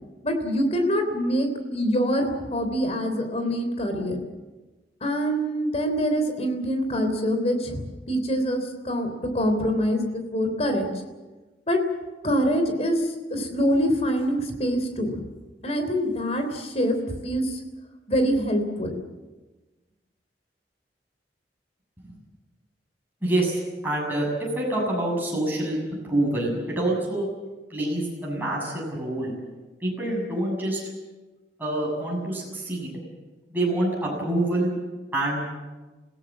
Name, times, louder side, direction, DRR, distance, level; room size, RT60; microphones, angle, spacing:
voice 1, 0.2-4.2 5.0-9.1 9.3-10.9 11.7-11.8 12.2-15.1 15.6-17.0 17.2-17.6 18.1-18.9, equal, 40° left, 6 dB, 3.4 m, -25 dB
voice 2, 23.2-24.3 24.6-25.8 26.0-27.3 27.7-29.3 29.8-30.8 31.6-33.0 33.5-34.8 35.1-35.4, right 1 dB, 10° right, -4 dB, 7.1 m, -26 dB
27.5 x 16.5 x 7.5 m, 1.2 s
head